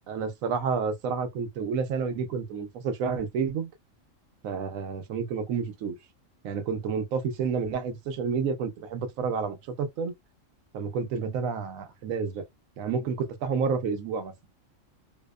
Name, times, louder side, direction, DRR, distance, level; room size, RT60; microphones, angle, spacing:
voice 1, 0.1-3.7 4.4-5.9 6.4-10.1 10.7-12.4 12.8-14.3, right 5 dB, 90° right, 1.0 m, -30 dB
2.7 x 2.0 x 2.2 m
omnidirectional pair, 1.4 m